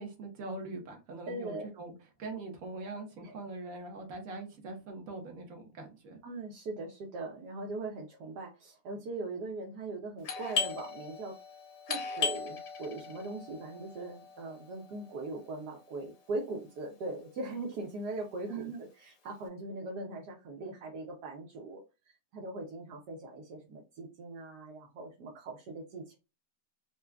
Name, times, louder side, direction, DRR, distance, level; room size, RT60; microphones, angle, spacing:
voice 1, 0.0-1.9 2.2-6.2 18.5-18.8, right 3 dB, 60° right, 3 dB, 1.4 m, -42 dB
voice 2, 1.3-1.7 3.2-3.3 6.2-11.4 11.9-21.8 22.3-26.2, right 2 dB, 80° right, -2 dB, 1.4 m, -40 dB
Doorbell, 10.2-15.7, left 5 dB, 55° left, 0.8 m, -38 dB
4.7 x 2.3 x 2.2 m, 0.28 s
omnidirectional pair, 1.7 m